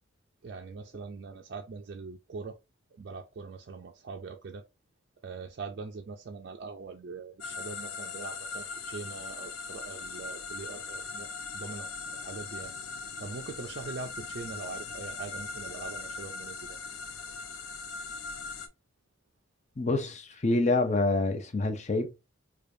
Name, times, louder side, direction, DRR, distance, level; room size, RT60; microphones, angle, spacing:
voice 1, 0.4-2.6 2.9-4.6 5.2-12.7 13.2-16.8, right 4 dB, 50° right, 0.4 m, -42 dB
sound 1, 7.4-18.7, left 4 dB, 90° left, 0.6 m, -40 dB
voice 2, 19.8-22.1, left 2 dB, 35° left, 0.6 m, -27 dB
4.9 x 2.3 x 2.6 m
head